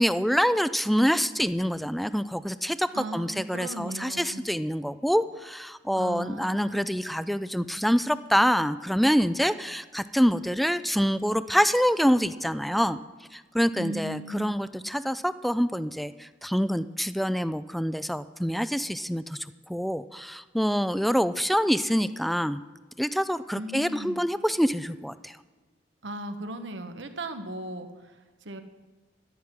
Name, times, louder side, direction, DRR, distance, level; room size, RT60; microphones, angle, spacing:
voice 1, 0.0-13.0 13.3-22.6 23.0-25.4, equal, ahead, 14 dB, 0.3 m, -26 dB
voice 2, 2.9-4.4 5.9-6.9 13.7-14.5 23.5-24.2 26.0-28.6, right 1 dB, 80° right, 7 dB, 1.2 m, -37 dB
13.0 x 6.0 x 9.6 m, 1.4 s
head